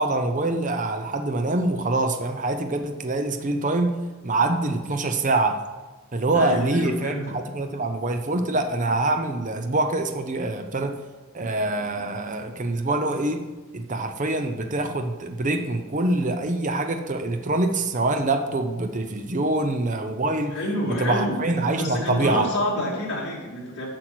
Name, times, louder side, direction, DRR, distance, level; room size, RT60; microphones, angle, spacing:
voice 1, 0.0-4.0 4.2-5.6 6.1-11.0 11.3-13.4 13.7-20.6 20.9-22.5, right 2 dB, 35° right, 6 dB, 0.7 m, -25 dB
voice 2, 6.3-7.3 20.5-21.4 21.8-23.9, left 1 dB, 50° left, -3 dB, 2.6 m, -28 dB
9.9 x 6.5 x 6.2 m, 1.3 s
head